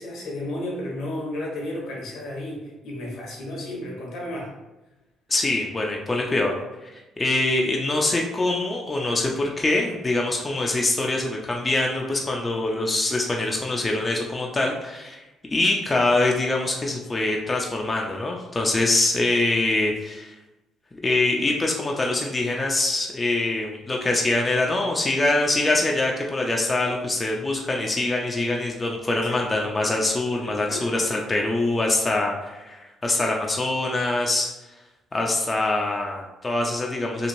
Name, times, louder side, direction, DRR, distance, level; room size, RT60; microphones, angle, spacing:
voice 1, 0.0-4.5 29.2-29.4 30.7-30.8, left 1 dB, 75° left, -2 dB, 0.9 m, -33 dB
voice 2, 5.3-6.6 6.8-15.2 15.5-20.3 21.0-34.5 35.1-37.3, left 2 dB, 25° left, -1 dB, 0.4 m, -24 dB
3.0 x 2.4 x 2.6 m, 1.0 s
supercardioid pair, 70°, 0 cm